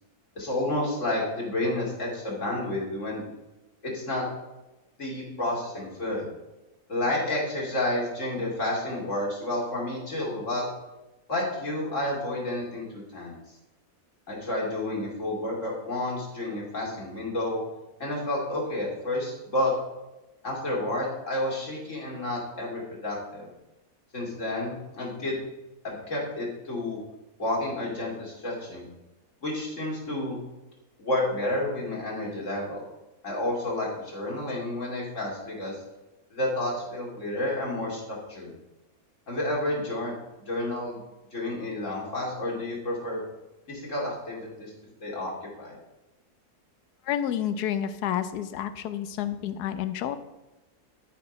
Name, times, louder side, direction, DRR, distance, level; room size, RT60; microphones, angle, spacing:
voice 1, 0.4-3.2 3.8-4.2 5.0-6.3 6.9-10.6 11.3-13.4 14.3-17.6 18.0-19.7 20.4-23.5 24.1-25.4 25.8-27.0 27.4-28.9 29.4-30.4 31.0-32.8 33.2-35.7 36.3-38.0 38.3-38.5 39.3-40.1 40.5-41.0 41.3-43.2 43.7-44.7 45.0-45.3 45.6-45.8, left 1 dB, 50° left, -3 dB, 2.7 m, -30 dB
voice 2, 47.0-50.2, left 10 dB, 80° left, 12 dB, 1.2 m, -29 dB
13.0 x 4.4 x 5.3 m, 1.0 s
omnidirectional pair, 1.7 m